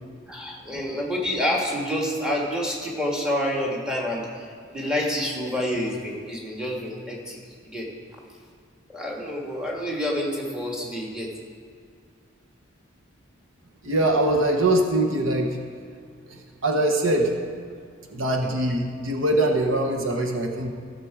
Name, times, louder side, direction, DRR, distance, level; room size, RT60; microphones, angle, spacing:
voice 1, 0.3-7.4 7.6-7.9 8.9-11.3 18.4-18.5, left 1 dB, 5° right, -2 dB, 1.6 m, -28 dB
voice 2, 13.8-15.6 16.3-17.3 18.1-20.7, right 1 dB, 65° right, 3 dB, 1.0 m, -23 dB
15.0 x 6.7 x 4.8 m, 2.1 s
head